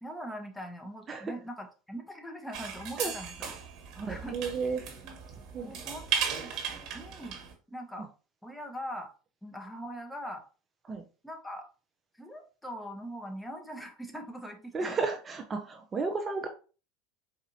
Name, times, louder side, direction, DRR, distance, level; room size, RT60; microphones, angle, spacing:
voice 1, 0.0-3.5 4.1-4.4 5.0-5.2 5.6-6.5 6.9-7.4 7.7-8.1 8.4-9.1 9.4-10.4 11.2-11.7 12.2-15.0, equal, 5° left, 4 dB, 0.8 m, -41 dB
sound 1, 2.5-7.5, right 7 dB, 50° right, 1.3 m, -36 dB
voice 2, 4.0-4.8 5.5-5.7 10.9-11.0 14.7-16.5, right 4 dB, 30° right, 4 dB, 0.5 m, -33 dB
4.0 x 2.5 x 2.7 m, 0.35 s
hypercardioid pair, 85°, 0 cm